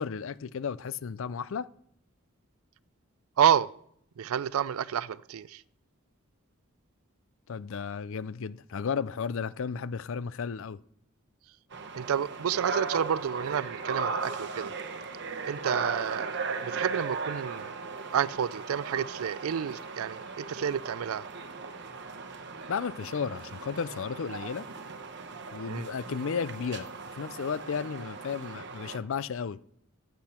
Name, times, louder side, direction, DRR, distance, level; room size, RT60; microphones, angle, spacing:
voice 1, 0.0-1.7 7.5-10.8 22.7-24.6 25.5-26.9 27.1-29.6, left 6 dB, 65° left, 0.4 m, -33 dB
voice 2, 3.4-3.7 4.2-5.6 12.0-14.7 15.4-16.4 16.6-17.7 18.1-21.3 25.7-25.9, right 8 dB, 85° right, 0.4 m, -29 dB
sound 1, 11.7-29.0, right 4 dB, 55° right, 1.0 m, -37 dB
14.5 x 8.3 x 4.3 m
head